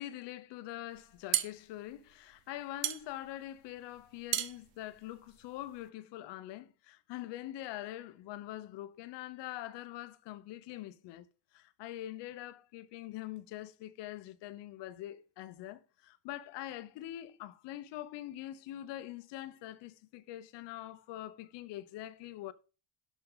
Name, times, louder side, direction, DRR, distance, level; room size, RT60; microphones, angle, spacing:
voice 1, 0.0-11.3 11.5-22.5, left 14 dB, 70° left, 1.0 m, -44 dB
sound 1, 1.0-5.9, right 13 dB, 80° right, 1.1 m, -37 dB
12.0 x 4.7 x 5.6 m
cardioid pair, 170°, 44 cm